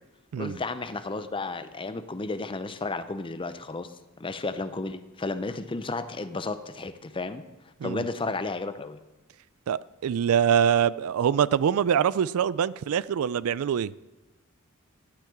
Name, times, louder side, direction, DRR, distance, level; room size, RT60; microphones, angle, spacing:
voice 1, 0.4-3.9 4.2-7.4 7.8-9.0, left 3 dB, 25° left, 11 dB, 0.6 m, -33 dB
voice 2, 9.7-13.9, right 8 dB, 75° right, 19 dB, 0.3 m, -24 dB
12.0 x 5.8 x 8.4 m, 1.1 s
head